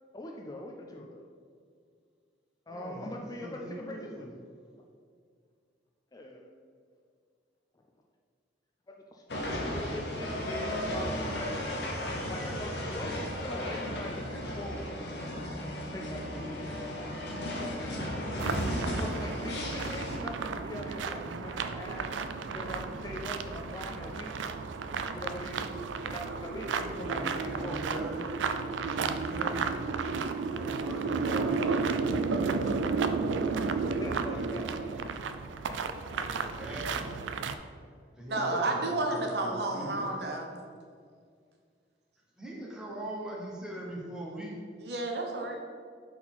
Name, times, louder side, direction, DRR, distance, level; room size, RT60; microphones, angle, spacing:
voice 1, 0.1-1.2 2.7-4.3 6.1-6.5 8.9-11.6 12.2-15.1 15.8-17.1 18.9-22.1 22.5-24.3 25.1-25.7 26.0-27.8 33.8-34.7 35.7-36.5 38.3-38.7, left 1 dB, 20° left, 1 dB, 0.4 m, -42 dB
voice 2, 2.7-4.2 27.0-29.7 30.5-33.7 34.0-34.8 36.3-37.5 38.2-40.2 42.4-44.6, right 1 dB, 5° right, -4 dB, 1.0 m, -42 dB
sound 1, 9.3-20.2, equal, 65° left, 1.0 m, -35 dB
sound 2, 18.4-37.6, right 4 dB, 85° right, 0.3 m, -33 dB
voice 3, 38.3-40.6 44.8-45.6, right 2 dB, 60° right, 1 dB, 0.8 m, -31 dB
4.2 x 4.2 x 5.6 m, 2.1 s
head